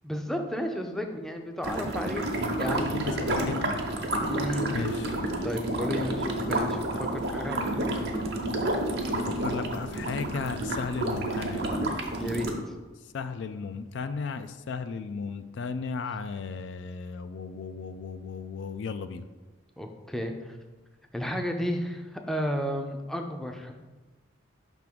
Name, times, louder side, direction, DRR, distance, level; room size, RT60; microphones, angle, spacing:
voice 1, 0.0-3.5 4.2-4.9 5.4-8.1 12.2-12.5 19.8-20.6 21.1-23.7, equal, ahead, 3 dB, 0.5 m, -33 dB
sound 1, 1.6-12.5, right 1 dB, 55° right, 0.9 m, -30 dB
voice 2, 2.4-3.8 4.7-5.3 8.9-11.9 13.1-19.2, left 4 dB, 65° left, 11 dB, 0.3 m, -35 dB
5.8 x 3.6 x 5.9 m, 1.2 s
head